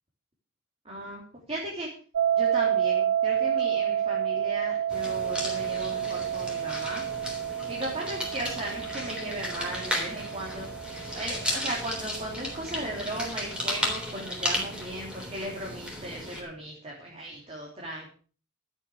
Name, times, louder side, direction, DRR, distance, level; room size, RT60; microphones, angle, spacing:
voice 1, 0.8-1.9 2.4-7.0 7.7-10.7 11.1-18.1, right 1 dB, 30° right, -2 dB, 3.3 m, -37 dB
sound 1, 2.1-13.1, right 9 dB, 85° right, 0.5 m, -30 dB
sound 2, 4.9-16.4, equal, 5° right, 3.5 m, -35 dB
12.5 x 8.5 x 6.3 m, 0.41 s
head